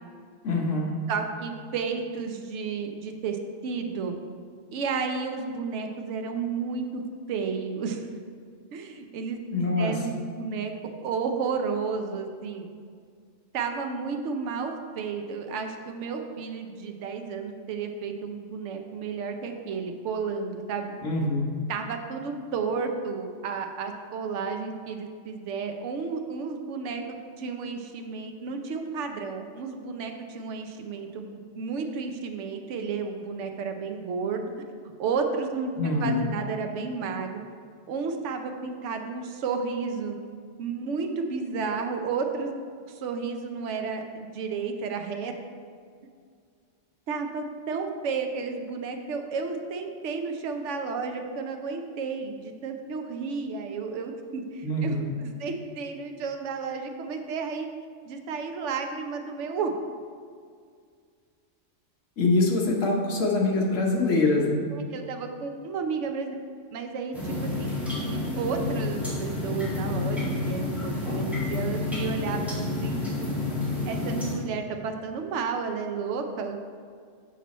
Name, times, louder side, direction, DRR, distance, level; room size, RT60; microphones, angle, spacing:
voice 1, 0.4-1.0 9.5-9.9 21.0-21.5 35.8-36.2 54.6-55.1 62.2-64.7, left 2 dB, 75° left, -1 dB, 1.5 m, -24 dB
voice 2, 1.1-3.4 3.6-4.1 4.7-7.0 7.3-8.0 8.7-10.7 11.0-12.6 13.5-20.9 21.7-34.5 35.0-37.4 37.9-40.2 40.6-42.5 42.9-45.3 47.1-57.7 58.1-59.8 64.7-66.3 66.7-73.3 73.9-76.7, right 5 dB, 70° right, 4 dB, 1.0 m, -32 dB
sound 1, 67.1-74.3, left 2 dB, ahead, 1.7 m, -29 dB
7.3 x 5.7 x 4.2 m, 2.1 s
omnidirectional pair, 1.3 m